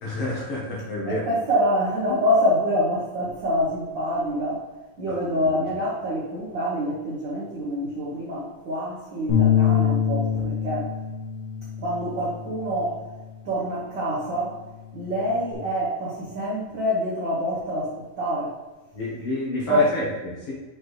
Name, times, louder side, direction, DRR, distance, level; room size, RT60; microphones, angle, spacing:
voice 1, 0.0-1.5 5.3-5.5 18.9-20.5, left 1 dB, 60° left, -5 dB, 1.6 m, -29 dB
voice 2, 1.1-4.6 5.0-10.9 11.8-13.0 13.4-14.5 14.9-17.9 18.2-18.5 19.7-19.9, equal, 80° right, -6 dB, 1.0 m, -26 dB
Bass guitar, 9.3-13.8 14.2-15.5, left 9 dB, 85° left, 3.0 m, -26 dB
6.3 x 4.9 x 3.1 m, 1.1 s
omnidirectional pair, 4.0 m